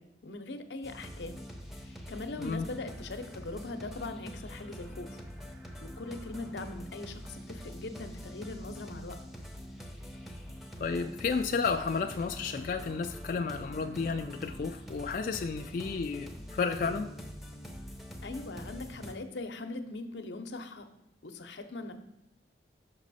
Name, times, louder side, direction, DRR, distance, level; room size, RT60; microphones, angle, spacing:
voice 1, 0.0-1.4 1.8-5.2 5.8-9.2 18.2-20.9 21.2-22.0, left 2 dB, 90° left, 7 dB, 0.7 m, -41 dB
sound 1, 0.8-19.1, equal, ahead, 0.6 m, -45 dB
voice 2, 10.8-17.1, left 5 dB, 50° left, 4 dB, 0.3 m, -32 dB
6.0 x 5.3 x 4.1 m, 0.86 s
head